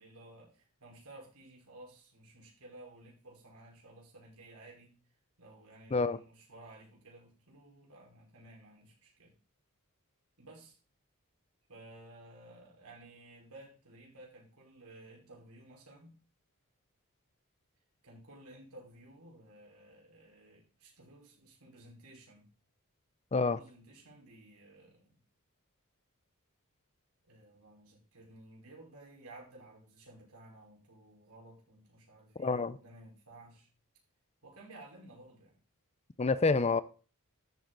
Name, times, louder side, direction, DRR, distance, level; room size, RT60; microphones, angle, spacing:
voice 1, 0.0-5.0 5.4-9.4 10.4-10.8 11.7-16.2 18.0-22.5 23.3-25.2 27.3-33.7 34.4-35.5 36.5-36.7, right 1 dB, 80° right, 5.4 m, -55 dB
voice 2, 32.4-32.8 36.2-36.8, left 4 dB, 30° left, 0.6 m, -28 dB
13.0 x 8.1 x 4.0 m
head